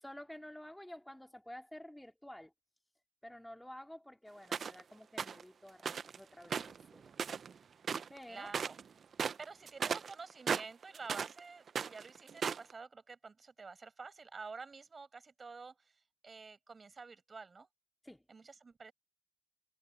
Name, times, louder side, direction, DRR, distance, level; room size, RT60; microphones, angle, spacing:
voice 1, 0.0-2.5 3.2-7.0 8.1-8.5 18.0-18.2, left 1 dB, 5° left, 2.8 m, -51 dB
sound 1, 4.5-4.8 5.2-5.4 5.8-6.2 6.4-7.6 7.8-8.2 8.5-8.8 9.1-11.4 11.7-12.7, right 6 dB, 50° right, 0.9 m, -36 dB
voice 2, 8.3-8.8 9.4-17.7 18.3-18.9, right 4 dB, 35° right, 7.4 m, -49 dB
cardioid pair, 90°, 0 cm